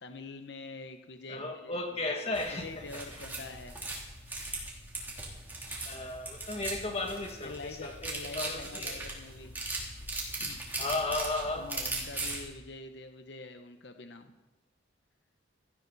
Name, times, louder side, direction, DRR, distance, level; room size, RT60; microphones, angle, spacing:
voice 1, 0.0-3.8 7.4-9.5 10.4-10.6 11.6-14.3, left 3 dB, 60° left, 7 dB, 0.9 m, -45 dB
voice 2, 1.3-2.8 5.9-9.0 10.8-11.7, left 2 dB, 30° left, 2 dB, 2.1 m, -35 dB
sound 1, 2.3-12.5, right 2 dB, 10° right, 3.1 m, -39 dB
16.5 x 15.0 x 4.1 m, 1.1 s
head